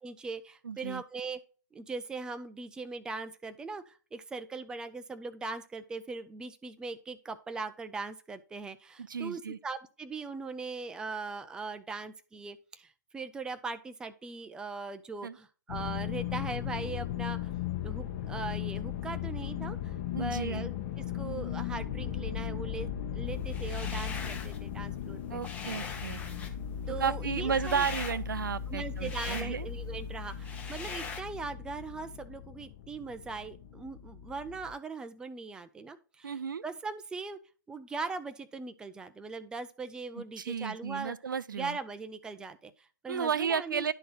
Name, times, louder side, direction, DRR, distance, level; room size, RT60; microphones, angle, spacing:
voice 1, 0.0-1.4 1.7-17.5 17.8-25.4 26.9-27.8 28.7-37.4 37.7-41.1 41.5-43.9, right 4 dB, 5° right, 0.5 m, -40 dB
voice 2, 0.6-1.0 9.1-9.6 15.2-15.3 20.1-20.7 25.3-26.2 27.0-29.7 36.2-36.6 40.2-41.8 43.1-43.9, right 7 dB, 75° right, 0.5 m, -33 dB
sound 1, 15.7-34.7, left 9 dB, 40° left, 1.0 m, -37 dB
sound 2, 23.4-24.6 25.0-31.2, left 5 dB, 15° left, 1.0 m, -42 dB
11.0 x 3.9 x 4.2 m
figure-of-eight pair, 125°, 11 cm